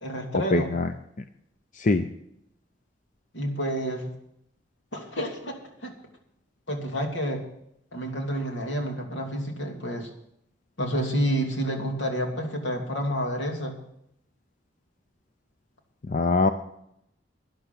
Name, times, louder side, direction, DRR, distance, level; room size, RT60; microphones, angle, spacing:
voice 1, 0.0-0.7 3.3-4.1 4.9-5.6 5.8-5.9 6.7-7.4 7.9-10.1 10.8-13.8, equal, 80° left, 2 dB, 2.9 m, -29 dB
voice 2, 0.5-0.9 1.8-2.1 16.1-16.5, left 3 dB, 45° left, 8 dB, 0.6 m, -22 dB
12.5 x 10.5 x 6.0 m, 0.76 s
head